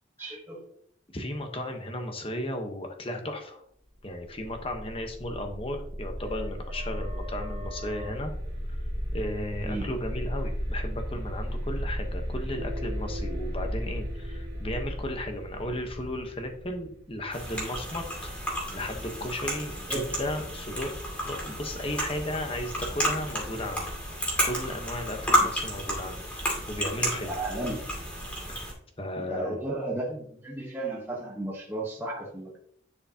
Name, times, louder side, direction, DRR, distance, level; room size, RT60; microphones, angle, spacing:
voice 1, 0.2-0.6 9.6-9.9 19.9-20.1 25.4-25.5 27.3-27.8 29.3-32.6, right 2 dB, 10° right, -3 dB, 1.1 m, -34 dB
voice 2, 1.1-3.6 4.0-8.3 8.7-8.8 9.1-18.3 18.7-20.9 21.2-23.9 24.4-27.3 28.5-28.7 29.0-29.6, left 1 dB, 30° left, 4 dB, 1.0 m, -35 dB
sound 1, 4.3-17.9, equal, 75° right, 2.9 m, -35 dB
sound 2, 17.3-28.7, equal, 5° left, 2.3 m, -31 dB
10.5 x 4.9 x 2.8 m, 0.66 s
head